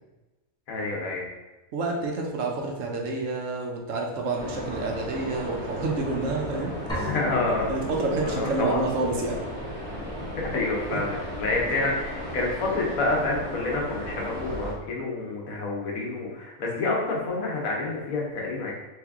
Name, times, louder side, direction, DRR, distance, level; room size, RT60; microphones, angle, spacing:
voice 1, 0.7-1.3 7.0-7.7 8.2-8.8 10.4-18.7, left 2 dB, 75° left, -2 dB, 1.3 m, -28 dB
voice 2, 1.7-7.2 7.7-9.4 10.9-11.0 11.7-11.8, right 3 dB, 70° right, 0 dB, 1.0 m, -29 dB
sound 1, 4.4-14.7, equal, 25° left, 1.4 m, -35 dB
sound 2, 6.9-8.7, equal, 5° left, 0.4 m, -35 dB
3.4 x 3.0 x 3.5 m, 1.1 s
omnidirectional pair, 1.5 m